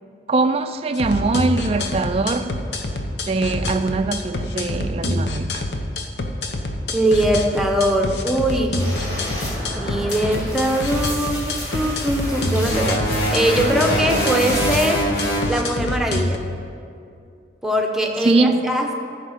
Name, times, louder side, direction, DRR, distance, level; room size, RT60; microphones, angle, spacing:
voice 1, 0.3-2.6 3.2-5.7 18.2-18.7, right 3 dB, 35° right, 0.3 m, -21 dB
sound 1, 0.9-16.4, left 1 dB, 75° left, 0.9 m, -26 dB
voice 2, 6.9-8.9 9.7-15.1 15.5-16.4 17.6-18.9, equal, ahead, 0.8 m, -21 dB
sound 2, 8.8-14.9, equal, 20° left, 2.6 m, -31 dB
sound 3, 12.7-15.5, right 1 dB, 55° left, 2.7 m, -23 dB
13.5 x 5.0 x 6.4 m
head